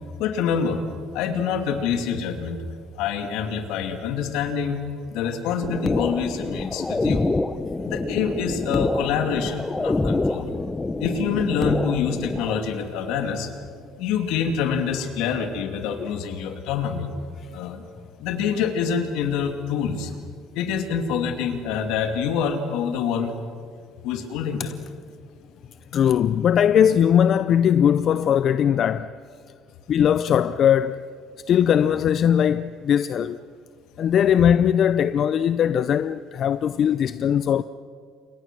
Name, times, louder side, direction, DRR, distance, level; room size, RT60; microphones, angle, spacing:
voice 1, 0.2-0.8 1.1-2.6 3.0-4.8 5.1-7.2 7.8-10.5 11.0-13.5 14.0-17.1 17.5-17.9 18.2-20.1 20.5-23.3 24.0-24.8, left 7 dB, 80° left, 2.6 m, -26 dB
sound 1, 5.6-12.6, left 2 dB, 15° left, 0.9 m, -26 dB
voice 2, 25.9-29.1 29.9-31.0 31.5-33.4 34.0-37.6, left 9 dB, 55° left, 0.6 m, -20 dB
28.5 x 22.5 x 6.2 m
supercardioid pair, 90°, 0 cm